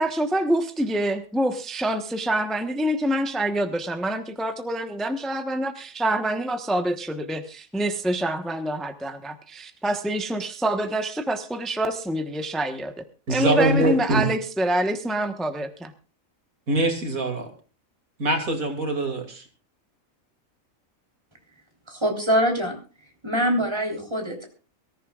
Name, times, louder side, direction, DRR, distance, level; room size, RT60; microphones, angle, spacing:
voice 1, 0.0-13.0 13.3-15.9, right 1 dB, ahead, 6 dB, 1.0 m, -26 dB
voice 2, 13.3-14.3 16.7-17.5 18.2-19.5, right 2 dB, 90° right, 4 dB, 3.0 m, -23 dB
voice 3, 21.9-22.8 23.2-24.5, equal, 20° right, 2 dB, 3.7 m, -24 dB
24.0 x 14.0 x 2.4 m, 0.35 s
omnidirectional pair, 1.4 m